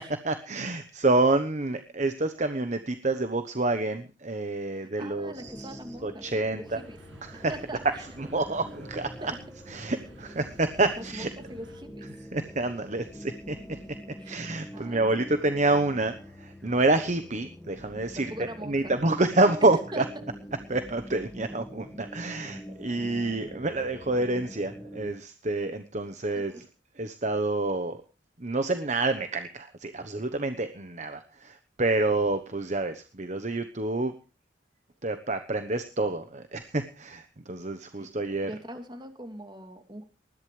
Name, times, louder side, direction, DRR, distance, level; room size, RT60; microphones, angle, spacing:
voice 1, 0.2-5.7 6.0-6.8 7.2-7.5 8.2-9.3 9.7-11.3 12.3-13.8 14.3-18.3 18.7-20.0 20.7-26.6 27.0-28.0 28.4-34.1 35.0-38.5, right 2 dB, 40° right, 9 dB, 1.1 m, -28 dB
voice 2, 4.7-6.2 6.5-7.0 7.5-8.1 9.2-9.4 11.0-12.1 14.2-14.4 14.7-15.3 18.1-18.9 19.9-20.0 26.3-26.7 38.0-38.1 38.5-40.0, right 1 dB, 25° right, 5 dB, 2.7 m, -42 dB
sound 1, 5.3-25.1, equal, 5° left, 1.6 m, -45 dB
sound 2, 6.6-11.8, right 1 dB, 85° right, 7.1 m, -51 dB
20.5 x 14.5 x 3.3 m, 0.34 s
head